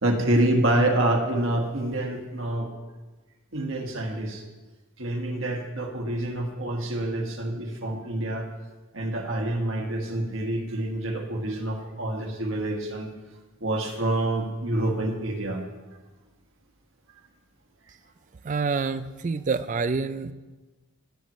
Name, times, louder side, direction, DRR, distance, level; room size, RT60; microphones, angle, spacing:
voice 1, 0.0-2.7 3.5-4.4 5.0-8.5 8.9-13.1 13.6-15.6, right 1 dB, 60° right, 2 dB, 1.6 m, -27 dB
voice 2, 18.4-20.3, right 4 dB, 35° right, 13 dB, 0.4 m, -27 dB
18.5 x 8.4 x 3.1 m, 1.2 s
head